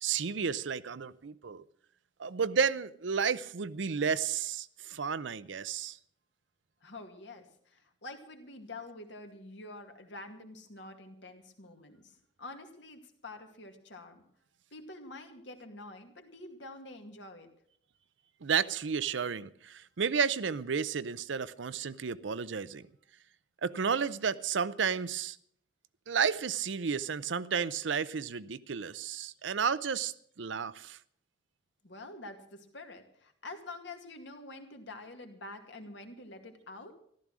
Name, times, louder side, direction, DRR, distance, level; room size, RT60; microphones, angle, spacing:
voice 1, 0.0-1.6 2.2-6.0 18.4-22.9 23.6-25.4 26.1-31.0, right 6 dB, 75° right, 0.6 m, -32 dB
voice 2, 6.8-14.2 14.7-17.5 31.8-36.9, left 2 dB, 70° left, 2.2 m, -47 dB
14.5 x 12.5 x 6.2 m
head